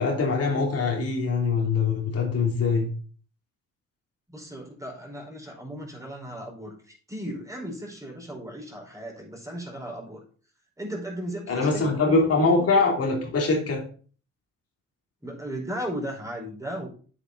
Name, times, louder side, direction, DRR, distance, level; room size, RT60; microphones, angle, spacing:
voice 1, 0.0-2.9 11.5-13.8, left 4 dB, 55° left, 0 dB, 3.2 m, -23 dB
voice 2, 4.3-10.2 10.8-12.3 15.2-16.9, equal, 10° right, -1 dB, 4.9 m, -36 dB
8.6 x 8.4 x 4.1 m, 0.41 s
cardioid pair, 90°, 30 cm